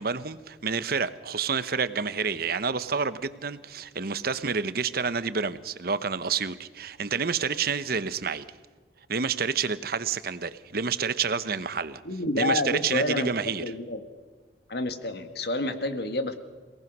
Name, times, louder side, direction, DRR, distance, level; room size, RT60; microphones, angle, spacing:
voice 1, 0.0-8.4 9.1-12.0 12.4-13.6, right 5 dB, 60° right, 14 dB, 1.0 m, -29 dB
voice 2, 12.0-13.3 13.6-14.0 14.7-16.4, left 2 dB, 65° left, 8 dB, 1.9 m, -29 dB
28.0 x 18.5 x 6.2 m, 1.4 s
head